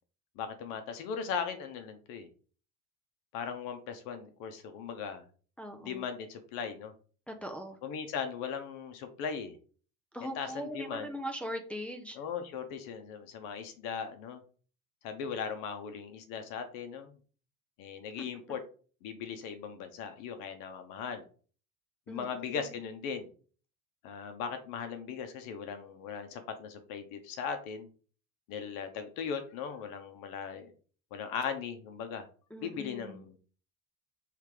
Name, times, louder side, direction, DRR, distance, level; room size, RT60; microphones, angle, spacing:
voice 1, 0.4-2.3 3.3-5.2 5.8-6.9 7.8-9.6 10.2-11.1 12.1-14.4 15.0-17.1 17.8-18.6 19.0-21.3 22.1-23.3 24.0-27.9 28.5-30.7 31.1-32.2 32.6-33.4, left 6 dB, 70° left, 7 dB, 1.0 m, -38 dB
voice 2, 5.6-6.0 7.3-7.8 10.1-12.2 22.1-22.6 32.5-33.2, equal, 5° left, 2 dB, 0.4 m, -40 dB
5.6 x 3.4 x 4.9 m, 0.40 s
cardioid pair, 180°, 34 cm